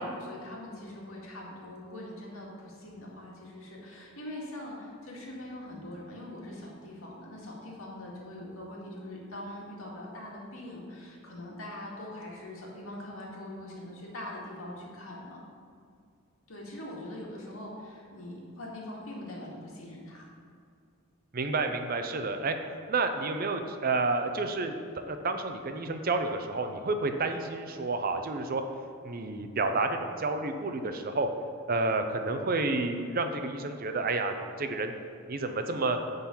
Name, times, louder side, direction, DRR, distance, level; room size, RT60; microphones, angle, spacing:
voice 1, 0.0-15.4 16.5-20.3, left 1 dB, 80° left, -3 dB, 2.1 m, -42 dB
voice 2, 21.3-22.6 22.9-24.8 25.1-28.6 29.0-31.3 31.7-34.9 35.3-36.0, right 3 dB, 45° right, 7 dB, 0.6 m, -30 dB
10.0 x 4.0 x 7.2 m, 2.3 s
head